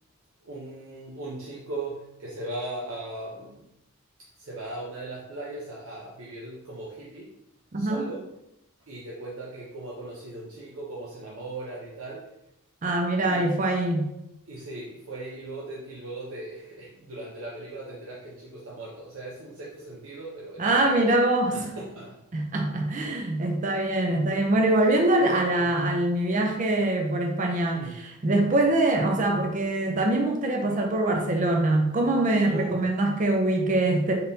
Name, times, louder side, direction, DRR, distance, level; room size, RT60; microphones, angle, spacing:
voice 1, 0.4-3.6 4.4-7.3 7.8-8.3 8.9-12.3 13.3-13.5 14.5-21.0 21.5-22.2 24.7-24.9 25.5-25.6 27.7-28.0 32.5-32.8, right 2 dB, 90° right, -4 dB, 0.7 m, -38 dB
voice 2, 7.7-8.0 12.8-14.1 20.6-21.7 22.3-34.1, right 2 dB, 40° right, 2 dB, 0.5 m, -24 dB
3.9 x 3.6 x 2.7 m, 0.86 s
head